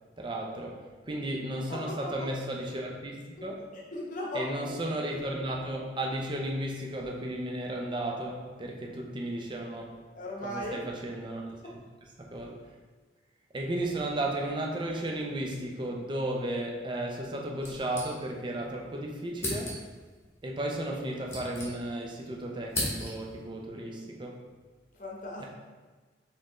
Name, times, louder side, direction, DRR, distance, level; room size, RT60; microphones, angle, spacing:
voice 1, 0.2-3.7 4.3-10.0 10.4-11.8 12.2-12.7 13.5-19.8 20.4-24.4 25.4-25.5, right 1 dB, 25° right, 0 dB, 0.5 m, -34 dB
voice 2, 1.7-2.3 3.7-4.6 10.1-10.8 24.9-25.5, left 1 dB, 45° left, -3 dB, 0.9 m, -37 dB
sound 1, 17.6-18.6 18.9-19.0 19.4-20.1 20.9-22.2 22.4-23.4, left 1 dB, 15° left, 0.9 m, -36 dB
4.4 x 3.7 x 3.0 m, 1.3 s
head